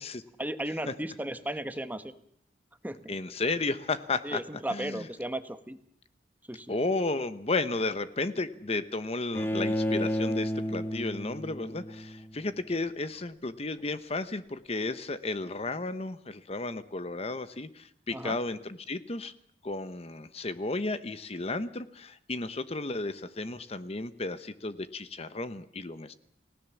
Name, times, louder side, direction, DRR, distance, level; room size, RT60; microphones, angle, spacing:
voice 1, 0.4-2.1 2.8-3.2 4.2-5.8 6.5-6.8 18.1-18.4, right 1 dB, 10° right, 10 dB, 1.2 m, -35 dB
voice 2, 3.1-4.4 4.7-5.1 6.7-19.3 19.6-26.1, left 3 dB, 35° left, 12 dB, 0.9 m, -33 dB
Bowed string instrument, 9.3-12.4, equal, 10° left, 1.6 m, -31 dB
30.0 x 17.5 x 7.1 m, 0.64 s
head